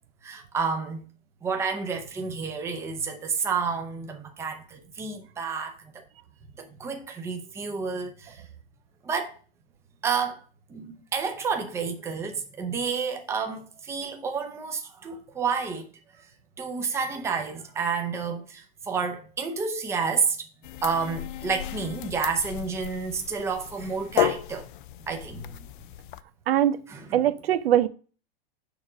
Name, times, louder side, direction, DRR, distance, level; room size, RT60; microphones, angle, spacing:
voice 1, 0.2-1.1 1.4-5.8 6.6-8.4 9.0-9.3 10.0-10.4 10.7-15.9 16.6-20.4 20.8-24.7 25.1-25.6 26.9-27.2, right 5 dB, 10° right, 0.8 m, -30 dB
sound 1, 20.6-26.2, left 13 dB, 55° left, 0.5 m, -33 dB
voice 2, 26.5-26.8 27.1-27.9, right 11 dB, 75° right, 0.7 m, -22 dB
6.8 x 3.7 x 6.0 m
supercardioid pair, 160°, 30 cm